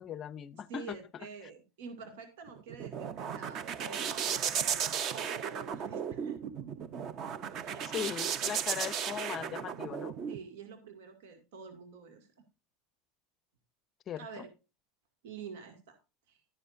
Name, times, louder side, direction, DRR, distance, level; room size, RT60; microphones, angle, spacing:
voice 1, 0.0-1.0 7.9-10.1 14.1-14.3, left 9 dB, 25° left, 0.5 m, -38 dB
voice 2, 0.5-7.0 7.6-8.1 10.3-12.3 14.2-14.5 15.2-16.0 16.3-16.4, right 5 dB, 80° right, 2.2 m, -48 dB
sound 1, 2.5-10.4, right 8 dB, 30° right, 0.6 m, -35 dB
12.5 x 10.0 x 2.6 m
supercardioid pair, 175°, 0 cm